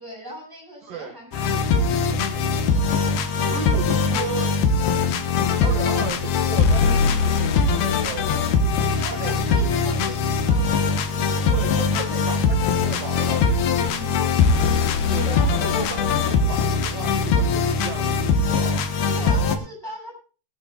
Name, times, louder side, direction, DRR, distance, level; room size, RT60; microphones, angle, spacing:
voice 1, 0.0-3.0 8.9-11.3 13.9-14.2 15.2-16.5 19.1-20.2, equal, 5° right, -3 dB, 7.8 m, -39 dB
voice 2, 0.8-1.1 3.3-4.6 4.9-9.6 11.4-13.5 15.1-18.9, right 6 dB, 65° right, 2 dB, 3.3 m, -35 dB
sound 1, 1.3-19.6, left 4 dB, 85° left, 3.2 m, -21 dB
20.5 x 12.0 x 2.4 m, 0.35 s
omnidirectional pair, 4.3 m